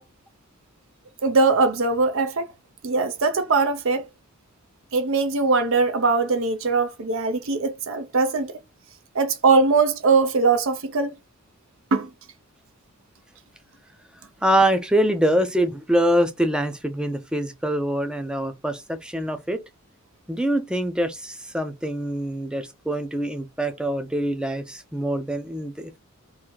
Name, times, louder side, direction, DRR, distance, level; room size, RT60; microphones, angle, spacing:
voice 1, 1.2-2.5 2.8-4.1 4.9-8.5 9.1-11.1 11.9-12.1, right 4 dB, 60° right, 0.6 m, -21 dB
voice 2, 14.4-19.6 20.3-26.0, right 1 dB, 5° right, 0.5 m, -24 dB
3.6 x 2.6 x 4.5 m
head